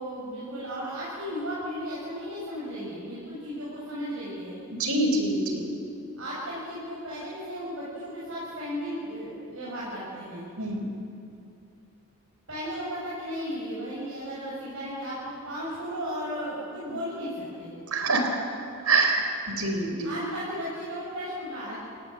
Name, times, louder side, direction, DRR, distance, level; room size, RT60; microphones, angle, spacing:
voice 1, 0.0-4.6 6.2-10.4 12.5-17.7 20.0-21.7, equal, 60° right, -7 dB, 7.3 m, -35 dB
voice 2, 4.7-5.7 10.6-10.8 17.9-18.3 18.8-20.1, right 3 dB, 85° right, 4 dB, 4.4 m, -25 dB
29.5 x 17.5 x 7.6 m, 2.6 s
head